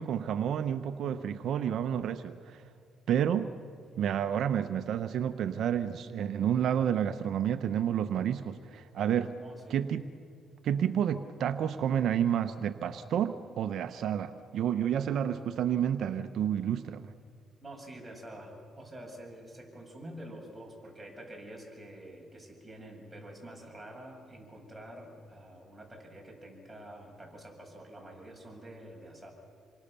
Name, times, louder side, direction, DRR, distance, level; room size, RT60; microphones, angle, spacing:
voice 1, 0.0-2.6 3.1-3.5 4.0-9.3 9.7-10.0 10.6-17.1, right 9 dB, 70° right, 10 dB, 0.8 m, -30 dB
voice 2, 9.4-9.8 17.6-29.3, right 1 dB, 10° right, -1 dB, 7.7 m, -47 dB
27.5 x 24.0 x 6.9 m, 2.3 s
cardioid pair, 90°, 0 cm